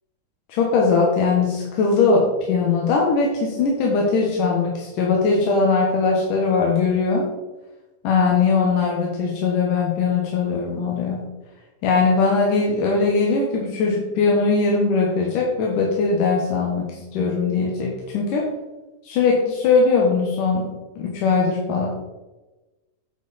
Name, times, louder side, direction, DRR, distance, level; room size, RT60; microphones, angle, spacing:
voice 1, 0.5-7.3 8.0-11.2 11.8-18.4 19.0-20.7 21.0-21.9, left 4 dB, 85° left, -2 dB, 3.0 m, -20 dB
10.5 x 7.8 x 4.2 m, 1.1 s
omnidirectional pair, 3.6 m